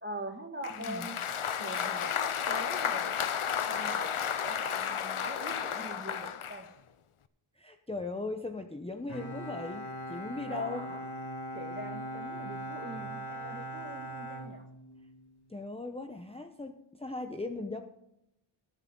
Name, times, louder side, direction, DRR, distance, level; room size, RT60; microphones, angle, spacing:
voice 1, 0.0-1.2 1.6-3.1 3.5-6.7 10.5-11.0 11.5-14.7, right 1 dB, 25° right, 4 dB, 2.1 m, -43 dB
Applause, 0.6-6.6, left 8 dB, 85° left, 0.7 m, -33 dB
voice 2, 0.7-1.1 7.5-10.9 15.5-17.8, left 2 dB, 10° left, 5 dB, 0.8 m, -38 dB
Bowed string instrument, 9.1-15.2, right 1 dB, 50° left, 2.5 m, -40 dB
21.5 x 7.3 x 3.9 m, 0.83 s
wide cardioid pair, 40°, 49 cm